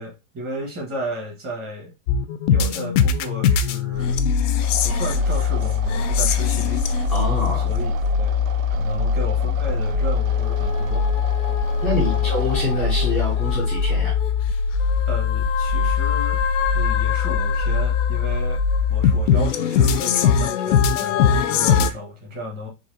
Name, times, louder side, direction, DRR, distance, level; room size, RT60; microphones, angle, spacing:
voice 1, 0.0-1.9 2.5-4.3 4.8-6.8 7.5-8.3 8.7-11.1 11.9-12.3 15.1-16.4 16.7-18.6 18.9-22.7, equal, 20° right, -1 dB, 1.3 m, -34 dB
sound 1, 2.1-21.9, left 6 dB, 60° left, 0.5 m, -21 dB
sound 2, 4.6-13.5, right 9 dB, 65° right, 0.7 m, -38 dB
voice 2, 7.1-7.7 11.8-14.1, left 1 dB, ahead, -7 dB, 0.4 m, -26 dB
4.2 x 2.9 x 2.6 m, 0.26 s
supercardioid pair, 160°, 42 cm